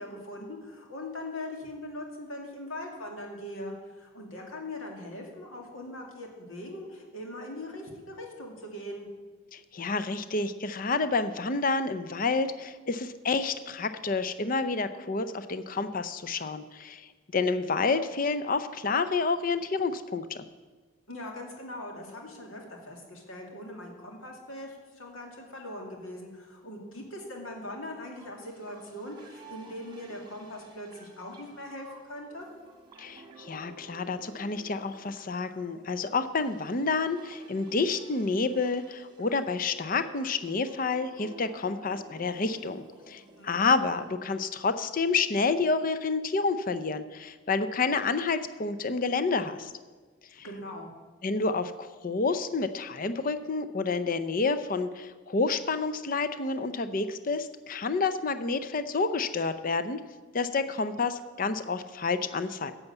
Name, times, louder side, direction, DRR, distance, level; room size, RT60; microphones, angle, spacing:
voice 1, 0.0-9.1 21.1-32.5 43.4-43.7 50.4-50.9, left 1 dB, 85° left, 1 dB, 2.4 m, -41 dB
voice 2, 9.5-20.4 33.0-49.7 50.4-50.5 51.2-60.0 60.3-62.7, left 4 dB, 40° left, 12 dB, 0.5 m, -29 dB
sound 1, 28.2-44.1, right 2 dB, 20° right, 1.6 m, -52 dB
11.0 x 7.0 x 8.0 m, 1.3 s
head